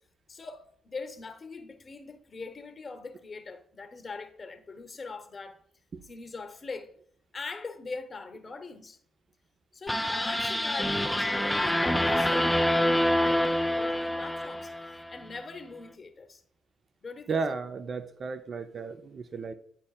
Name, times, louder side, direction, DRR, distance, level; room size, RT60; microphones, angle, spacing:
voice 1, 0.3-5.6 6.0-7.0 7.3-9.0 9.7-12.5 13.1-16.4 17.0-17.4, left 4 dB, 40° left, 0.8 m, -41 dB
sound 1, 9.9-15.2, left 1 dB, 5° left, 0.5 m, -26 dB
voice 2, 17.3-19.5, right 4 dB, 45° right, 0.5 m, -34 dB
10.5 x 4.2 x 2.4 m
supercardioid pair, 60°, 0 cm